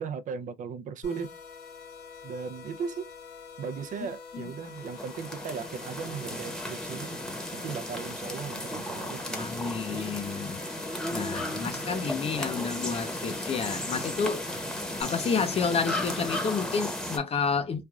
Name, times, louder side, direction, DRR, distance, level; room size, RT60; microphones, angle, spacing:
voice 1, 0.0-1.4 2.2-3.1 3.6-7.2 7.5-10.1 11.8-12.6, right 6 dB, 50° right, 0.5 m, -37 dB
sound 1, 1.0-15.0, left 5 dB, 75° left, 1.4 m, -46 dB
sound 2, 4.6-17.2, left 1 dB, 5° left, 1.0 m, -35 dB
voice 2, 9.4-10.6 11.1-14.5 14.9-17.8, left 5 dB, 35° left, 0.6 m, -30 dB
3.2 x 2.3 x 2.3 m
cardioid pair, 110°, 17 cm